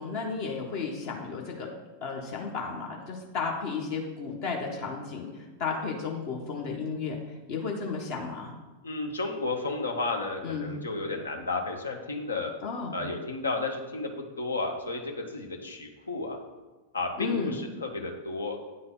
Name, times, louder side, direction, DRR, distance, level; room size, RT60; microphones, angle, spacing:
voice 1, 0.0-1.7 2.0-5.3 5.6-7.2 7.5-8.5 10.4-10.7 12.6-13.0 17.2-17.6, left 5 dB, 45° left, 0 dB, 1.0 m, -33 dB
voice 2, 8.8-12.5 12.9-14.1 14.4-16.4 16.9-18.6, left 3 dB, 75° left, 3 dB, 0.9 m, -32 dB
8.9 x 3.8 x 3.8 m, 1.2 s
figure-of-eight pair, 90°, 0 cm